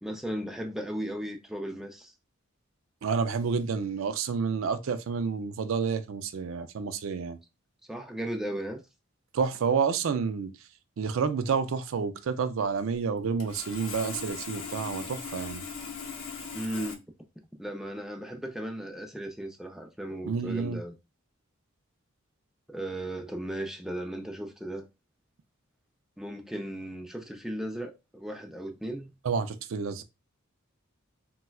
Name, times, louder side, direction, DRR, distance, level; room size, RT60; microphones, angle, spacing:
voice 1, 0.0-2.1 7.9-8.8 16.5-17.0 17.6-20.9 22.7-24.9 26.2-29.1, right 1 dB, ahead, 0.4 m, -36 dB
voice 2, 3.0-7.4 9.3-10.5 11.0-15.6 20.3-20.8 29.2-30.0, right 5 dB, 65° right, 0.4 m, -29 dB
Sawing, 13.4-16.9, left 4 dB, 80° left, 0.7 m, -39 dB
4.1 x 2.2 x 2.3 m
head